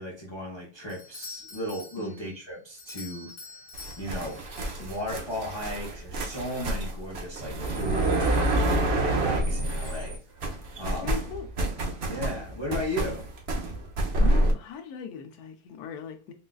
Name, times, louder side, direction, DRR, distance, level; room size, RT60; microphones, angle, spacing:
voice 1, 0.0-3.3 4.0-4.4 4.8-10.2 10.8-11.1 12.1-13.3, left 1 dB, 25° left, 0.6 m, -35 dB
Doorbell, 0.9-5.4, left 4 dB, 55° left, 1.0 m, -46 dB
sound 1, 3.7-10.1 10.4-14.5, right 1 dB, 55° right, 0.6 m, -28 dB
voice 2, 11.0-11.5 14.2-16.3, left 7 dB, 80° left, 1.1 m, -39 dB
4.2 x 2.3 x 2.2 m
omnidirectional pair, 1.6 m